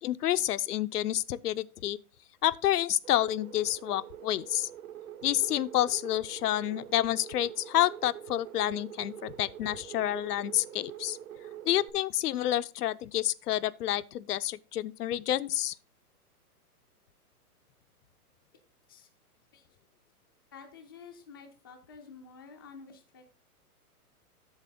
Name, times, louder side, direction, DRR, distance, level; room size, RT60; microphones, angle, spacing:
voice 1, 0.0-2.0 2.4-4.7 5.2-11.2 11.6-15.8, left 13 dB, 80° left, 0.6 m, -29 dB
sound 1, 3.0-11.9, right 10 dB, 70° right, 1.4 m, -45 dB
voice 2, 20.5-23.3, left 5 dB, 20° left, 0.3 m, -50 dB
8.0 x 6.9 x 3.8 m
hypercardioid pair, 150°, 46 cm